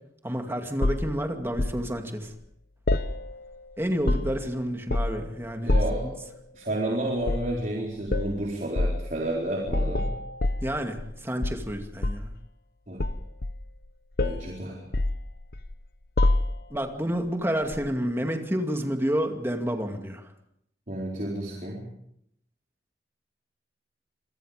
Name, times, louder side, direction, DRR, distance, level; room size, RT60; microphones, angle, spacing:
voice 1, 0.2-2.3 3.8-5.7 6.0-6.1 10.6-12.3 16.7-20.3, equal, 15° right, 4 dB, 2.3 m, -29 dB
sound 1, 0.8-1.8 2.9-3.6 3.9-4.5 4.9-5.3 5.7-6.1 7.2-7.5 8.1-8.3 8.8-9.0 9.7-11.1 11.4-12.4 13.0-13.9 14.2-14.5 14.9-15.7 16.2-16.8 17.7-17.9, left 2 dB, 55° left, 0.9 m, -26 dB
voice 2, 5.6-6.3 6.5-10.1 12.9-13.0 14.2-14.8 20.9-21.8, right 1 dB, 45° right, -2 dB, 4.1 m, -31 dB
27.5 x 22.5 x 5.1 m, 0.76 s
head